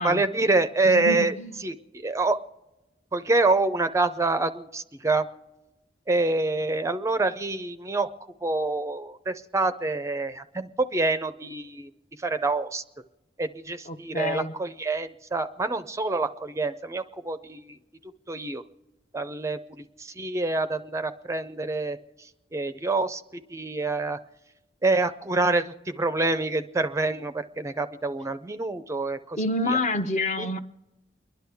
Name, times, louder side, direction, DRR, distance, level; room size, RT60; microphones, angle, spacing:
voice 1, 0.0-1.3 1.6-2.4 3.1-5.3 6.1-8.1 8.4-11.9 12.2-12.8 13.4-17.8 18.3-18.6 19.1-22.0 22.5-23.2 23.5-24.2 24.8-29.4 29.7-29.8 30.4-30.6, right 3 dB, 15° right, 10 dB, 0.4 m, -26 dB
voice 2, 0.8-1.5 13.9-14.5 29.4-30.6, left 2 dB, 45° left, 8 dB, 0.8 m, -28 dB
30.0 x 11.0 x 3.5 m, 1.1 s
head